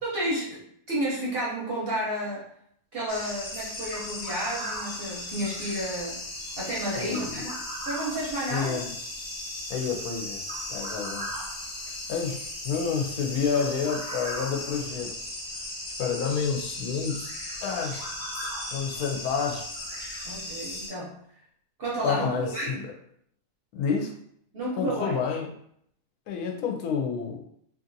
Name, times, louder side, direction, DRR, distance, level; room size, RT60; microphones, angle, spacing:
voice 1, 0.0-2.5 2.9-6.2 6.6-7.5 7.9-8.8 20.2-21.1 21.8-22.8 24.5-25.2, right 1 dB, 50° right, -5 dB, 0.7 m, -31 dB
sound 1, 3.1-20.9, left 1 dB, 40° left, 1.1 m, -36 dB
voice 2, 7.0-7.5 8.5-8.9 9.7-11.3 12.1-15.1 16.0-17.3 17.6-18.1 18.7-19.7 22.0-22.8 23.7-24.1 24.8-25.5 26.3-27.4, left 6 dB, 85° left, 2 dB, 1.1 m, -29 dB
2.8 x 2.6 x 2.5 m, 0.69 s
omnidirectional pair, 1.6 m